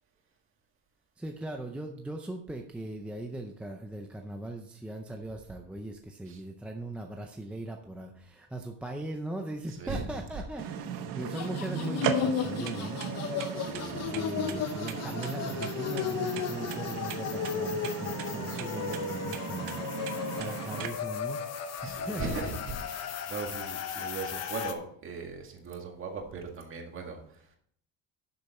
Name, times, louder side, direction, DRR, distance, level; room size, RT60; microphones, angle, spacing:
voice 1, 1.2-13.0 13.8-22.4 23.0-23.1, right 1 dB, 5° right, 2 dB, 0.5 m, -39 dB
voice 2, 9.7-10.0 13.5-14.1 21.8-27.6, right 4 dB, 30° right, 2 dB, 2.0 m, -39 dB
sound 1, 10.6-20.9, right 8 dB, 55° right, 1.2 m, -36 dB
sound 2, 11.2-24.7, left 7 dB, 40° left, 1.0 m, -35 dB
11.5 x 6.8 x 4.2 m, 0.63 s
cardioid pair, 175°, 39 cm